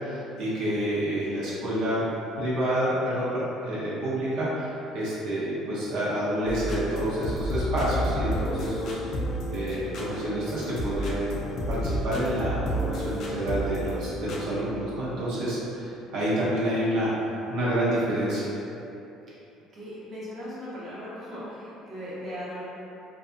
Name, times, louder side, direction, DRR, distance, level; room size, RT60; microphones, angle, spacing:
voice 1, 0.0-2.0 2.4-9.0 9.5-11.3 11.7-18.5, right 1 dB, 70° right, -9 dB, 0.7 m, -28 dB
sound 1, 6.5-14.6, equal, 55° left, 0.4 m, -31 dB
voice 2, 19.7-22.6, equal, 40° right, -9 dB, 0.8 m, -38 dB
2.6 x 2.4 x 2.5 m, 2.9 s
cardioid pair, 115°, 0 cm